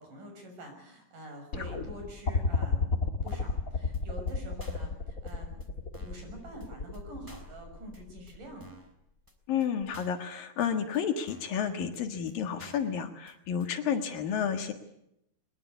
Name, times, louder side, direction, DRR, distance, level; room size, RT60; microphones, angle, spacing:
voice 1, 0.0-2.9 3.2-5.6 6.0-8.8, right 1 dB, 55° right, 4 dB, 8.0 m, -46 dB
sound 1, 1.5-8.7 9.8-9.9, left 4 dB, 35° left, 1.4 m, -32 dB
sound 2, 3.3-3.6 3.9-4.0 4.3-4.4 4.6-4.9 5.3-5.4 5.6-5.7 5.9-6.3 6.6-6.7 6.9-7.0 7.3-7.6 7.9-8.0 8.3-8.4 8.6-8.9 9.3-9.4 9.6-9.7 9.9-10.3 10.6-10.7 10.9-11.0 11.3-11.6 11.9-12.0 12.3-12.4 12.6-12.9 13.3-13.4 13.6-13.7, equal, 5° right, 2.5 m, -53 dB
voice 2, 9.5-14.7, left 8 dB, 65° left, 7 dB, 3.2 m, -31 dB
22.5 x 21.5 x 8.2 m, 0.80 s
omnidirectional pair, 4.6 m